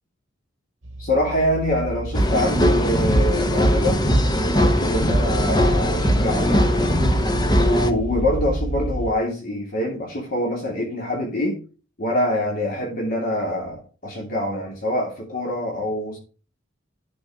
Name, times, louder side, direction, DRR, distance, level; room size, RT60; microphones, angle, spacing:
sound 1, 0.8-9.1, right 1 dB, 85° right, 1.2 m, -29 dB
voice 1, 1.0-4.0 4.5-7.0 7.6-11.6 12.0-16.2, left 1 dB, 45° left, 2.8 m, -25 dB
sound 2, 2.1-7.9, equal, 20° left, 1.0 m, -20 dB
11.5 x 5.2 x 4.8 m
head